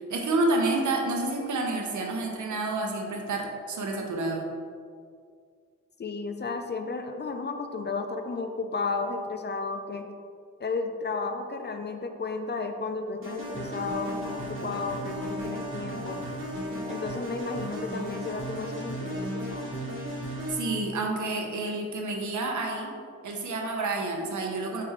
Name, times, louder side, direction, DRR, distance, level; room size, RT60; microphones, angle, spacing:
voice 1, 0.1-4.5 20.5-22.9 23.2-24.8, right 2 dB, 80° right, 1 dB, 0.7 m, -29 dB
voice 2, 6.0-10.1 10.6-16.2 16.9-19.7, left 4 dB, 35° left, 6 dB, 0.4 m, -33 dB
sound 1, 13.2-20.9, equal, 45° right, 1.3 m, -35 dB
4.6 x 3.4 x 3.1 m, 2.1 s
cardioid pair, 45°, 30 cm